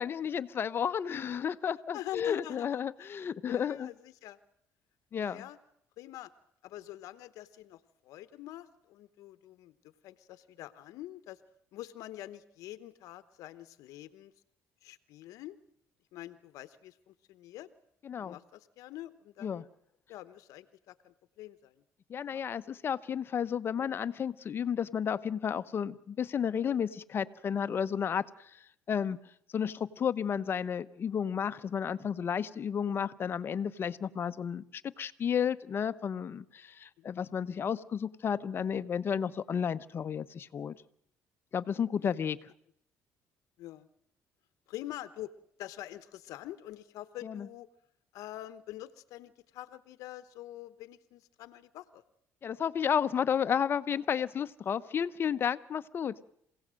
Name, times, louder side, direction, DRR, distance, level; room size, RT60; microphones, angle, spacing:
voice 1, 0.0-3.9 5.1-5.4 18.0-18.4 19.4-19.6 22.1-28.5 28.9-29.2 29.5-40.8 41.5-42.5 47.2-47.5 52.4-56.2, left 8 dB, 40° left, 13 dB, 0.9 m, -32 dB
voice 2, 1.9-3.2 3.5-4.4 5.1-5.6 6.0-6.3 6.6-11.4 11.7-14.3 14.8-15.6 16.1-17.7 18.2-19.7 20.1-21.8 22.2-22.5 29.1-29.2 37.0-37.1 42.0-42.1 43.6-43.9 44.7-45.3 45.6-47.7 48.1-52.0, left 14 dB, 75° left, 13 dB, 1.0 m, -46 dB
27.0 x 17.0 x 7.6 m, 0.71 s
cardioid pair, 110°, 6 cm